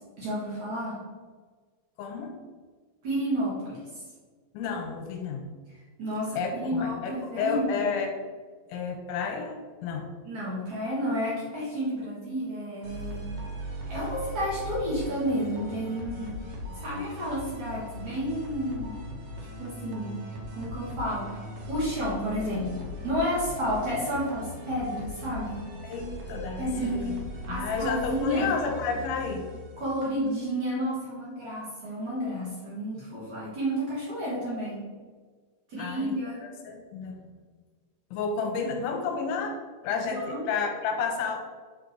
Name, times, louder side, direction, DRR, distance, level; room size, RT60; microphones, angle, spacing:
voice 1, 0.2-1.0 3.0-3.8 6.0-7.7 10.2-13.3 13.9-16.3 16.8-19.0 19.6-20.2 20.5-25.6 26.6-27.2 27.5-28.5 29.8-34.8 35.7-36.4 40.1-40.6, equal, 50° right, -8 dB, 2.6 m, -31 dB
voice 2, 2.0-2.4 4.5-5.5 6.4-8.1 8.7-10.1 25.8-27.1 27.5-29.5 35.8-36.2 36.4-37.2 38.1-39.6 39.8-41.4, left 5 dB, 85° left, 3 dB, 3.0 m, -31 dB
sound 1, 12.8-30.3, equal, 80° right, 1.4 m, -39 dB
8.3 x 3.8 x 4.5 m, 1.5 s
omnidirectional pair, 5.5 m